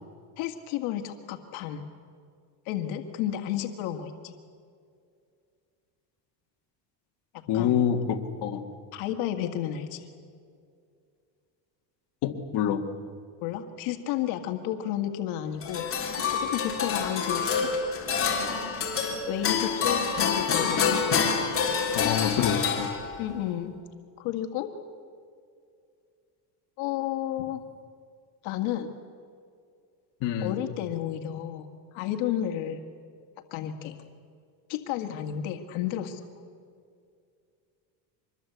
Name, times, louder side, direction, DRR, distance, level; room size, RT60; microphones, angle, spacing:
voice 1, 0.4-1.9 2.7-4.3 7.5-7.8 8.9-10.1 13.4-17.7 19.3-21.0 23.2-23.7 24.2-24.7 26.8-27.6 28.4-28.9 30.4-31.7 31.9-32.8 33.5-34.0 34.7-36.2, left 11 dB, 75° left, 5 dB, 2.0 m, -32 dB
voice 2, 7.5-8.6 12.2-12.8 21.9-22.9 30.2-30.6, left 9 dB, 60° left, 2 dB, 2.0 m, -26 dB
sound 1, 15.6-23.3, left 6 dB, 25° left, 3.9 m, -27 dB
25.5 x 21.5 x 8.1 m, 2.3 s
cardioid pair, 150°, 48 cm